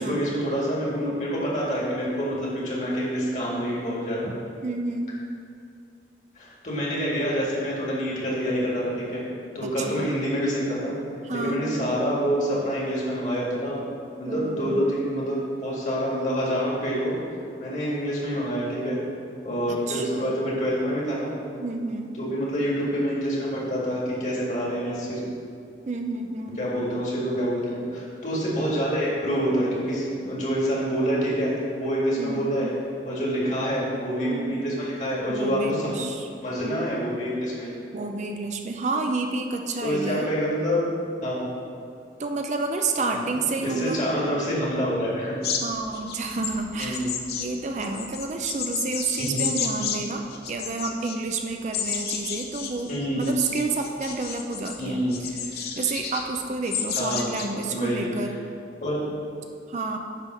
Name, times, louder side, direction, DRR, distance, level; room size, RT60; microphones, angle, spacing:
voice 1, 0.0-4.3 6.4-9.2 9.5-10.9 11.3-13.8 14.2-17.1 17.6-19.0 19.4-21.3 22.2-25.2 26.6-32.7 33.0-36.0 36.4-37.9 39.8-40.9 41.2-41.5 43.0-43.2 43.6-45.4 46.8-47.2 49.2-49.4 52.9-53.3 54.8-55.2 57.0-57.3 57.7-58.1 58.8-59.0, equal, 45° left, -5 dB, 2.0 m, -27 dB
voice 2, 4.6-5.2 9.6-10.1 11.2-11.6 14.3-14.9 19.7-20.3 21.6-22.1 25.9-26.6 32.2-32.5 34.2-34.6 35.3-36.3 36.6-36.8 37.9-40.3 42.2-44.0 45.6-47.1 47.3-55.0 55.3-58.4 59.7-60.0, right 3 dB, 40° right, 4 dB, 0.5 m, -30 dB
sound 1, 45.4-50.0 50.3-51.2 51.7-54.8 55.1-56.3 56.6-57.5, left 7 dB, 65° left, 0.7 m, -31 dB
9.8 x 3.6 x 6.2 m, 2.4 s
head